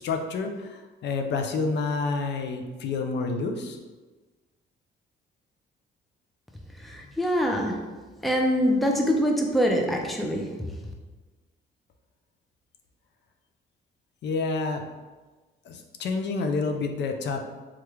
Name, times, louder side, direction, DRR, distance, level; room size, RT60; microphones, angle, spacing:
voice 1, 0.0-3.8 14.2-14.8 15.7-17.4, left 4 dB, 60° left, 4 dB, 0.4 m, -29 dB
voice 2, 6.8-7.8 8.2-10.5, equal, ahead, 1 dB, 0.4 m, -24 dB
3.3 x 2.3 x 3.0 m, 1.3 s
cardioid pair, 90°, 20 cm